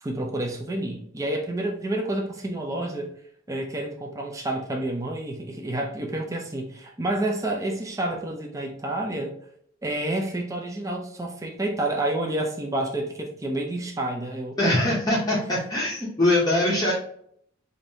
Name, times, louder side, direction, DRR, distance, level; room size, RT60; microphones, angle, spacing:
voice 1, 0.0-3.1 3.5-9.3 9.8-14.6 15.3-15.4, right 1 dB, 15° right, 1 dB, 0.5 m, -29 dB
voice 2, 14.6-16.9, left 1 dB, 20° left, -6 dB, 0.8 m, -22 dB
5.1 x 2.6 x 2.8 m, 0.66 s
head